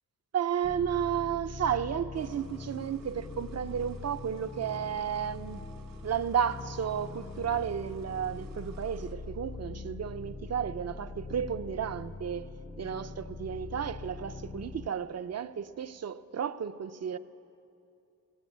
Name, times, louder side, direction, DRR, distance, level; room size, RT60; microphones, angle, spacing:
voice 1, 0.3-5.6 6.0-12.5 12.8-17.2, right 8 dB, 50° right, 0.6 m, -33 dB
sound 1, 0.6-14.9, left 3 dB, 20° left, 0.6 m, -43 dB
sound 2, 2.1-9.1, right 4 dB, 90° right, 3.4 m, -59 dB
18.5 x 18.5 x 9.4 m
wide cardioid pair, 155°, 33 cm